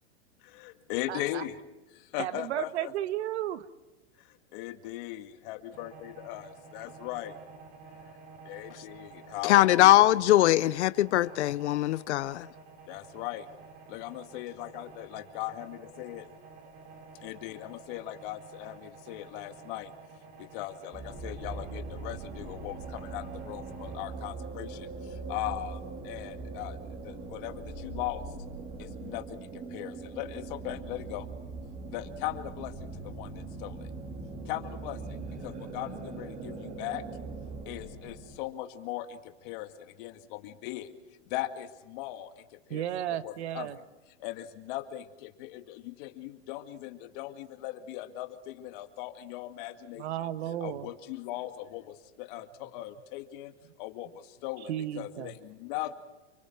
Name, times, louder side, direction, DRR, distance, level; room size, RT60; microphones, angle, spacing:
voice 1, 0.4-1.6 1.9-2.9 4.2-7.4 8.5-10.1 12.9-13.5 13.9-16.3 17.2-19.9 20.4-26.8 27.0-28.3 28.8-31.3 31.9-33.9 34.5-37.1 37.7-40.9 41.2-42.9 43.2-43.8 44.2-50.3 50.6-56.0, left 14 dB, 50° left, 2.1 m, -39 dB
voice 2, 1.1-1.4 2.2-3.6 42.7-43.8 50.0-50.9 54.7-55.3, right 12 dB, 70° right, 1.6 m, -33 dB
sound 1, 5.7-24.1, right 4 dB, 45° right, 6.1 m, -51 dB
voice 3, 9.5-12.5, left 15 dB, 75° left, 0.8 m, -21 dB
sound 2, 20.9-38.4, right 3 dB, 25° right, 2.9 m, -41 dB
30.0 x 23.0 x 4.6 m
supercardioid pair, 145°, 35 cm